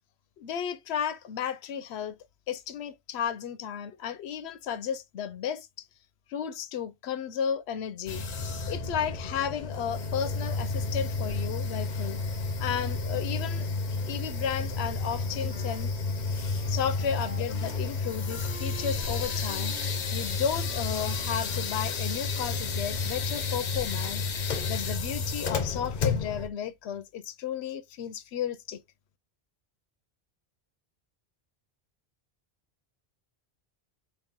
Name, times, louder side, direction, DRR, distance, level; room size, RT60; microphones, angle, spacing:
voice 1, 0.4-2.2 2.5-5.9 6.3-8.2 8.7-12.2 12.6-13.7 14.1-15.9 16.7-19.7 20.1-28.8, left 8 dB, 85° left, 0.9 m, -33 dB
sound 1, 8.1-26.5, left 4 dB, 50° left, 0.7 m, -31 dB
Wind instrument woodwind instrument, 15.0-22.5, right 3 dB, 45° right, 1.9 m, -50 dB
4.1 x 2.5 x 3.5 m
omnidirectional pair, 1.1 m